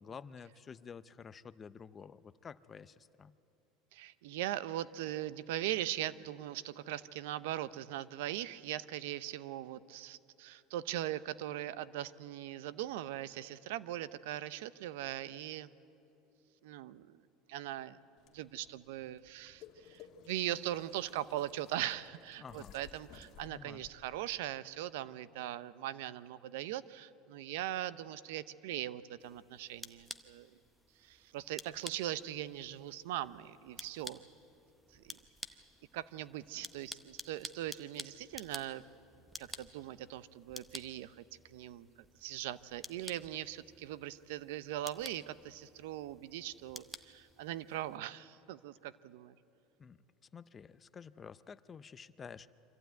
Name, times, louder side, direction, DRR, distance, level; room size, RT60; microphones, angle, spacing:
voice 1, 0.0-3.3 22.4-22.7 23.5-23.9 49.8-50.0 50.3-52.5, left 6 dB, 25° left, 15 dB, 0.5 m, -50 dB
voice 2, 3.9-15.7 16.6-17.2 17.5-18.0 18.3-30.5 31.0-34.2 34.9-35.2 35.9-38.8 39.4-41.9 42.2-49.3, right 13 dB, 85° right, 17 dB, 0.6 m, -40 dB
sound 1, 18.2-24.3, left 8 dB, 45° left, 1.6 m, -58 dB
sound 2, 29.2-48.0, equal, ahead, 0.8 m, -52 dB
25.0 x 15.0 x 9.3 m, 2.8 s
supercardioid pair, 145°, 0 cm